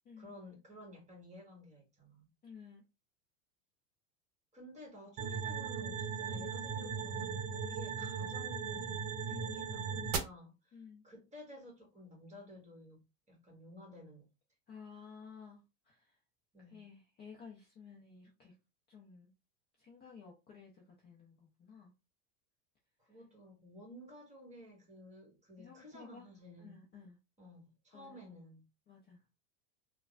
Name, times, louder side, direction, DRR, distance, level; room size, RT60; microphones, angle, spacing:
voice 1, 0.2-2.3 4.5-13.0 13.3-14.3 16.5-16.9 23.0-26.8 27.4-28.6, left 1 dB, 15° right, 1.4 m, -54 dB
voice 2, 2.4-2.8 9.3-9.9 10.7-11.0 14.7-16.2 16.7-18.5 18.9-19.3 19.8-21.9 25.6-26.3 26.6-27.2 27.9-28.3 28.9-29.2, left 6 dB, 20° left, 0.6 m, -54 dB
sound 1, 5.2-10.2, right 6 dB, 45° right, 0.8 m, -38 dB
3.3 x 2.2 x 2.4 m
supercardioid pair, 120°, 47 cm